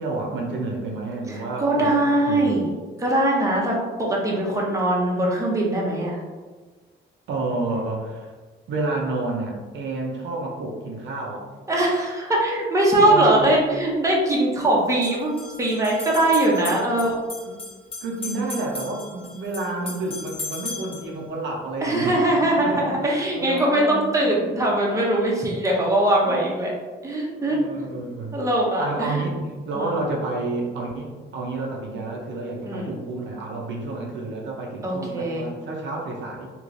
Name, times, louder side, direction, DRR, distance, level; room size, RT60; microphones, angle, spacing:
voice 1, 0.0-2.7 7.3-8.3 8.7-11.5 13.0-13.5 16.7-16.8 17.4-17.6 18.0-22.2 22.6-24.5 26.2-26.4 27.4-28.4 28.8-36.5, right 2 dB, 70° right, -1 dB, 0.6 m, -30 dB
voice 2, 1.3-2.7 3.0-6.2 11.7-15.3 15.6-17.2 21.8-26.7 27.0-28.0 28.3-29.2 29.7-29.9 32.7-32.9 34.8-35.5, right 1 dB, 15° right, -3 dB, 0.8 m, -21 dB
sound 1, 14.8-21.1, left 3 dB, 30° left, 1.1 m, -37 dB
3.1 x 2.9 x 2.5 m, 1.4 s
cardioid pair, 90°, 20 cm